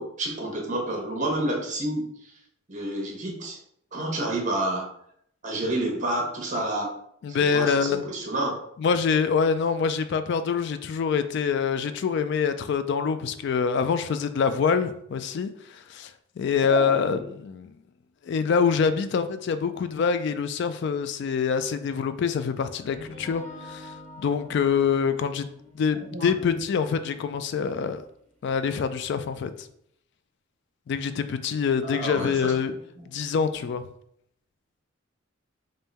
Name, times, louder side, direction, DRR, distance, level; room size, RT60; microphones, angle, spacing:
voice 1, 0.0-2.1 2.7-3.6 3.9-4.9 5.4-6.9 7.3-8.5 16.7-17.2 26.1-26.6 31.8-32.5 33.0-33.1, right 1 dB, 40° right, 1 dB, 1.0 m, -29 dB
voice 2, 7.2-8.1 8.8-16.1 16.4-17.7 18.3-23.4 23.7-23.9 24.2-25.4 25.8-28.0 28.4-29.5 30.9-32.7 33.1-33.8, left 6 dB, 60° left, 11 dB, 0.3 m, -25 dB
sound 1, 22.7-28.7, left 1 dB, 5° left, 1.6 m, -47 dB
3.6 x 2.6 x 4.1 m, 0.69 s
head